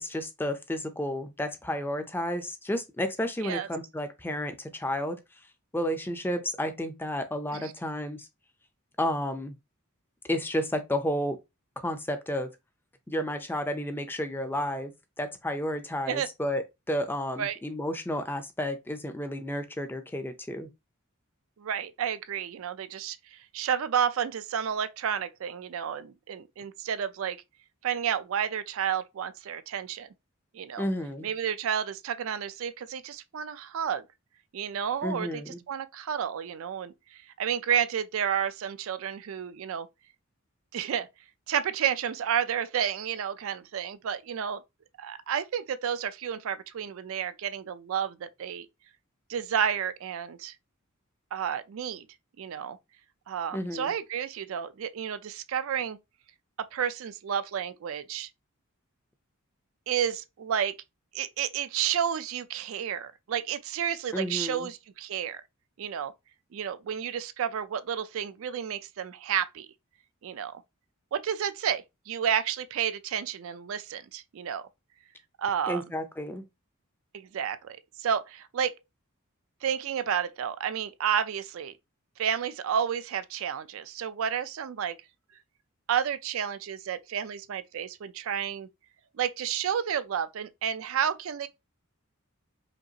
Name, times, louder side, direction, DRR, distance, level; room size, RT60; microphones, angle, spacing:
voice 1, 0.0-5.2 5.7-8.3 9.0-9.5 10.3-11.4 11.8-12.5 13.1-20.7 30.8-31.3 35.0-35.6 53.5-53.9 64.1-64.7 75.7-76.4, left 1 dB, 10° left, 0.5 m, -31 dB
voice 2, 21.6-27.4 27.8-30.1 30.5-30.9 31.2-34.0 34.5-35.4 35.7-36.9 37.4-39.9 40.7-41.1 41.5-44.6 45.0-48.7 49.3-50.5 51.3-52.1 52.4-52.8 53.3-56.0 56.6-58.3 59.9-60.7 61.1-65.4 65.8-66.1 66.5-69.7 70.2-70.6 71.1-74.6 75.4-75.8 77.1-78.7 79.6-81.7 82.2-85.0 85.9-88.7 89.2-91.5, right 8 dB, 65° right, 0.4 m, -31 dB
5.1 x 2.4 x 2.8 m
head